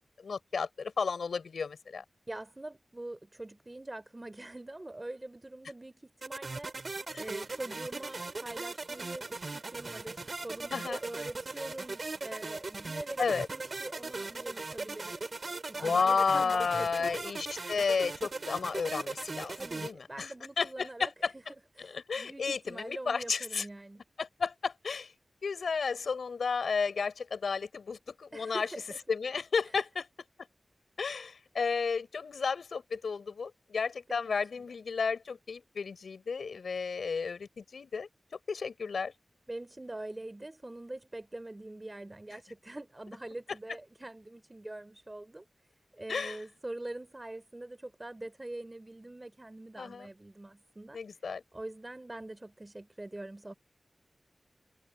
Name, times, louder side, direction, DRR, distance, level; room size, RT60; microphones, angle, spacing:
voice 1, 0.2-2.0 7.1-7.2 10.7-11.0 13.2-13.5 15.8-19.6 19.8-21.3 21.9-23.6 24.2-25.1 25.4-28.7 29.1-30.1 31.0-38.1 38.5-39.1 46.1-46.4 49.8-50.1 50.9-51.4, left 5 dB, 85° left, 5.7 m, -32 dB
voice 2, 2.3-6.7 7.1-15.2 15.7-17.4 19.6-24.0 28.3-29.0 29.7-29.8 34.1-34.7 39.5-45.4 45.9-51.0 51.5-53.5, right 2 dB, 30° right, 4.1 m, -44 dB
sound 1, 6.2-19.9, right 3 dB, 55° right, 2.6 m, -39 dB
cardioid pair, 50°, 0 cm